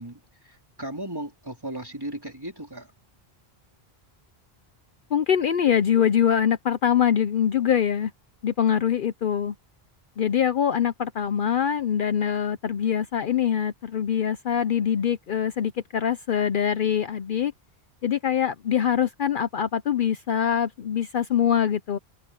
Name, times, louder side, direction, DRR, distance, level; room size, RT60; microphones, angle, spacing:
voice 1, 0.0-2.9, right 1 dB, 20° right, 3.6 m, -36 dB
voice 2, 5.1-8.1 8.4-9.5 10.2-17.5 18.0-22.0, left 9 dB, 60° left, 0.8 m, -23 dB
omnidirectional pair, 1.1 m